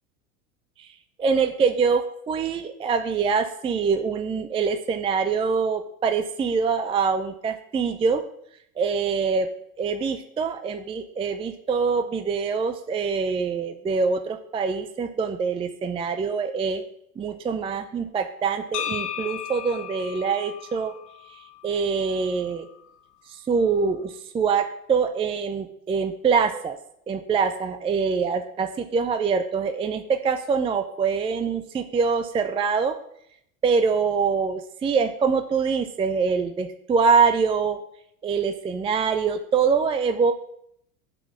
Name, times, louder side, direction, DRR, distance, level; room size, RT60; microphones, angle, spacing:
voice 1, 1.2-8.2 8.8-9.5 9.8-16.8 17.2-20.9 21.3-22.7 23.3-26.8 27.1-33.0 33.6-37.8 38.2-40.3, right 5 dB, 15° right, 8 dB, 0.4 m, -24 dB
sound 1, 18.7-22.8, left 10 dB, 45° left, 1.0 m, -36 dB
7.5 x 4.0 x 6.3 m, 0.71 s
hypercardioid pair, 90°, 42 cm